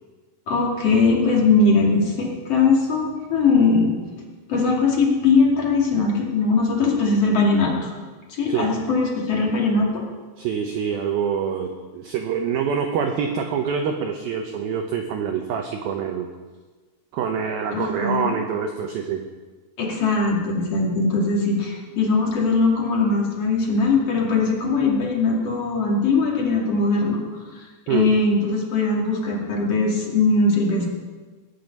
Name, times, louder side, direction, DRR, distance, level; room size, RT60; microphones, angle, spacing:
voice 1, 0.5-4.0 4.5-7.9 8.3-10.0 17.7-18.3 19.8-27.2 27.5-30.9, left 3 dB, 40° left, -2 dB, 2.7 m, -20 dB
voice 2, 10.4-16.3 17.1-19.3 27.9-28.1, right 7 dB, 85° right, 4 dB, 2.1 m, -25 dB
19.5 x 9.9 x 5.4 m, 1.4 s
omnidirectional pair, 5.5 m